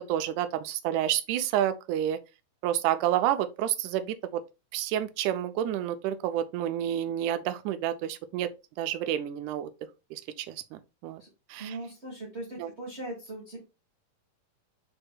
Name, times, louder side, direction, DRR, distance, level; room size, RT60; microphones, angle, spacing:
voice 1, 0.1-2.2 2.6-4.4 4.7-8.5 8.8-9.7 10.1-11.2 11.5-11.8 12.6-12.7, right 11 dB, 80° right, 1.9 m, -29 dB
voice 2, 11.6-13.6, right 2 dB, 40° right, 0.9 m, -39 dB
5.1 x 4.4 x 2.2 m
omnidirectional pair, 3.7 m